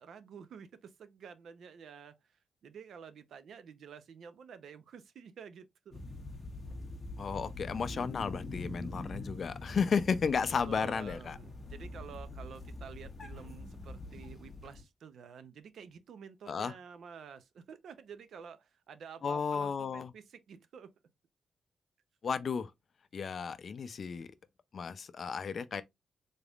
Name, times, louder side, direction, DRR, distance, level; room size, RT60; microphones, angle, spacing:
voice 1, 0.0-6.0 10.6-20.9, right 7 dB, 70° right, 0.6 m, -50 dB
sound 1, 5.9-14.8, left 2 dB, 25° left, 1.1 m, -44 dB
voice 2, 7.2-11.4 16.5-16.7 19.2-20.1 22.2-22.7 23.1-24.3 24.7-25.8, left 6 dB, 45° left, 0.5 m, -33 dB
4.0 x 3.4 x 2.3 m
wide cardioid pair, 160°, 0 cm